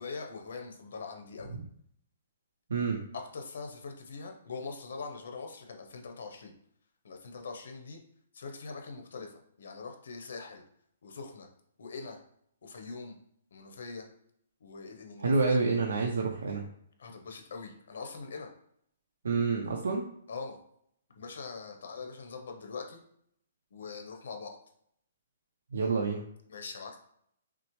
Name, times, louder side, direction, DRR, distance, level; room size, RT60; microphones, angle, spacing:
voice 1, 0.0-1.6 3.1-6.5 7.0-8.0 8.3-10.6 11.0-11.5 11.8-12.2 12.6-13.2 13.5-14.1 14.6-15.6 17.0-18.5 20.3-20.6 21.2-23.0 23.7-24.6 26.5-27.0, left 4 dB, 65° left, 4 dB, 0.8 m, -42 dB
voice 2, 15.2-16.6 19.2-20.1 25.7-26.2, right 4 dB, 90° right, 0 dB, 0.6 m, -28 dB
5.9 x 2.1 x 3.1 m, 0.69 s
hypercardioid pair, 175°, 0 cm